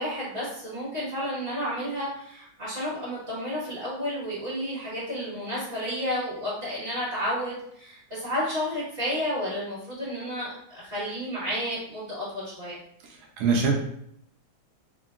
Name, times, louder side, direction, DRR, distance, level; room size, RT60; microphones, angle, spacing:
voice 1, 0.0-12.8, equal, 30° right, -9 dB, 1.4 m, -31 dB
voice 2, 13.0-13.7, right 5 dB, 70° right, 0 dB, 1.0 m, -25 dB
3.6 x 2.1 x 2.3 m, 0.71 s
omnidirectional pair, 2.2 m